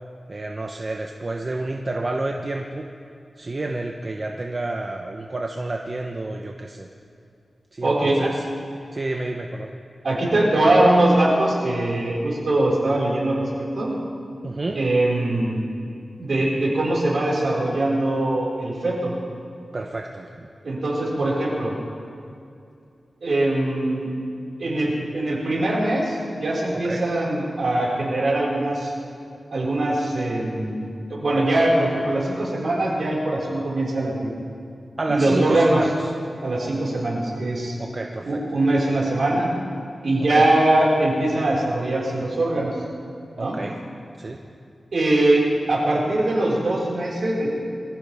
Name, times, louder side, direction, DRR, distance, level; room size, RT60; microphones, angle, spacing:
voice 1, 0.3-2.9 3.4-6.9 7.7-8.4 8.9-9.7 14.4-14.8 19.7-20.5 26.8-27.0 35.0-36.0 37.8-38.4 40.3-40.4 43.4-43.8 44.2-44.4, right 2 dB, 40° right, 2 dB, 0.9 m, -29 dB
voice 2, 7.8-8.3 10.0-13.9 14.7-15.6 16.2-19.1 20.6-21.7 23.2-24.1 24.6-28.9 29.5-34.3 35.1-35.8 36.4-37.7 38.2-39.5 40.0-42.7 43.4-43.6 44.9-47.5, right 1 dB, 65° right, -5 dB, 5.1 m, -22 dB
24.5 x 15.0 x 3.6 m, 2.5 s
wide cardioid pair, 95°, 0 cm